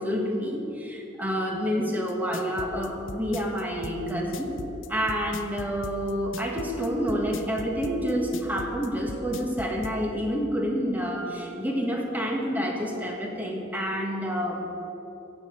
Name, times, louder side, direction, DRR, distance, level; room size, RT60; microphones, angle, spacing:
voice 1, 0.0-4.5 4.9-14.7, equal, 10° right, 0 dB, 1.6 m, -28 dB
sound 1, 2.1-10.0, left 3 dB, 75° left, 0.7 m, -39 dB
16.0 x 7.0 x 6.6 m, 2.9 s
head